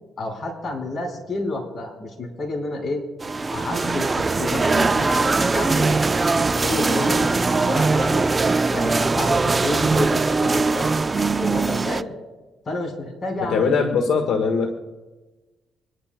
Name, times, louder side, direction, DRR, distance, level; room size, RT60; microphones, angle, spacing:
voice 1, 0.2-3.0 3.5-4.1 4.4-6.1 6.3-8.3 8.7-10.9 11.4-12.1 12.6-13.8, left 2 dB, 45° left, 2 dB, 4.4 m, -29 dB
sound 1, 3.2-12.0, right 3 dB, 25° right, 0.4 m, -21 dB
voice 2, 13.4-14.7, left 5 dB, 80° left, 4 dB, 1.4 m, -21 dB
25.5 x 11.5 x 2.2 m, 1.2 s
cardioid pair, 90°, 0 cm